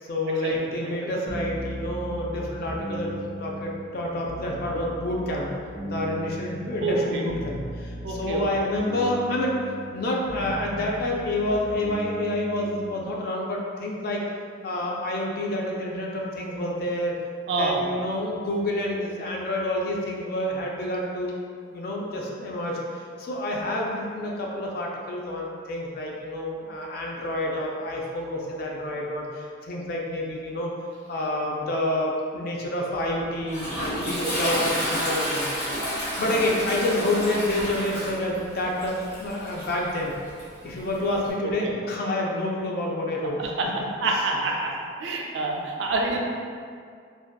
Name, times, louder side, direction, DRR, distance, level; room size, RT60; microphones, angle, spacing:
voice 1, 0.0-5.5 5.8-14.3 14.6-17.2 17.6-21.3 21.7-30.7 31.1-35.6 36.2-40.2 40.6-43.5, left 1 dB, 50° left, -2 dB, 0.3 m, -28 dB
sound 1, 1.3-13.1, right 1 dB, 20° left, 0.8 m, -37 dB
voice 2, 6.8-7.2 8.0-8.4 17.5-17.8 34.2-34.5 36.2-36.3 41.4-41.7 43.4-43.7 44.0-44.7 45.0-46.2, right 3 dB, 65° right, -1 dB, 0.3 m, -27 dB
Toilet flush, 33.0-41.3, equal, 70° left, 1.1 m, -31 dB
2.6 x 2.1 x 2.2 m, 2.2 s
head